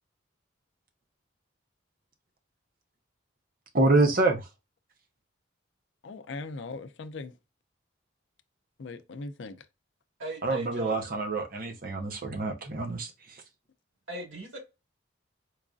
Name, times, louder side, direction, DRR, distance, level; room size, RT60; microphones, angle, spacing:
voice 1, 3.7-4.5 10.4-13.1, right 2 dB, 45° right, 0.8 m, -26 dB
voice 2, 6.0-7.3 8.8-9.6, left 3 dB, 65° left, 0.5 m, -39 dB
voice 3, 10.2-11.0 14.1-14.6, right 2 dB, 85° right, 2.2 m, -38 dB
4.6 x 2.5 x 2.3 m
head